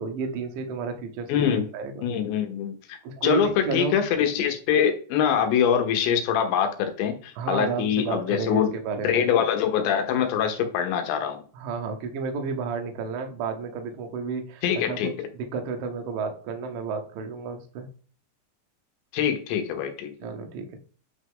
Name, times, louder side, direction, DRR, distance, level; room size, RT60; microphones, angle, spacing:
voice 1, 0.0-1.3 1.7-2.1 3.0-4.0 7.4-9.2 11.5-15.0 15.5-17.9 20.2-20.8, right 5 dB, 75° right, 4 dB, 2.1 m, -31 dB
voice 2, 1.3-1.6 2.0-8.7 9.0-11.4 14.6-15.1 19.1-20.1, left 8 dB, 75° left, 6 dB, 3.0 m, -24 dB
9.1 x 3.6 x 3.6 m, 0.42 s
omnidirectional pair, 5.6 m